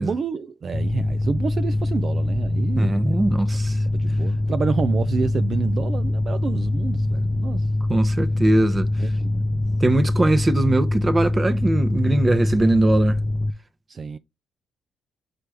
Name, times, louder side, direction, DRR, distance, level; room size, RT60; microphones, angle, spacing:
voice 1, 0.0-3.0 3.5-3.6 3.8-7.7 9.0-9.7 13.9-14.2, right 5 dB, 45° right, 0.4 m, -29 dB
Mechanical fan, 0.7-13.5, left 2 dB, 20° left, 0.6 m, -23 dB
voice 2, 2.7-3.8 7.9-8.9 9.8-13.2, right 2 dB, 25° right, 0.9 m, -21 dB
5.9 x 4.9 x 3.4 m
cardioid pair, 90°, 0 cm